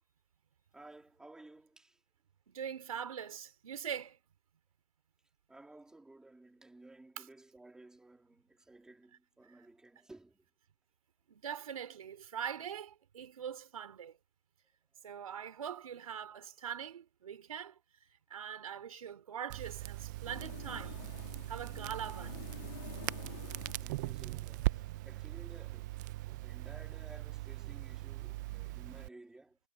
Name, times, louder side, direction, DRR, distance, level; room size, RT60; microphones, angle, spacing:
voice 1, 0.7-2.0 5.5-10.4 23.6-29.6, right 2 dB, 5° right, 3.4 m, -56 dB
voice 2, 2.5-4.2 7.2-7.3 11.3-14.2 15.0-17.8 18.3-21.0 21.5-22.4, right 8 dB, 85° right, 3.3 m, -42 dB
Crackle, 19.5-29.1, right 18 dB, 35° right, 0.6 m, -40 dB
sound 1, 20.2-24.9, left 16 dB, 50° left, 3.3 m, -51 dB
hypercardioid pair, 160°, 17 cm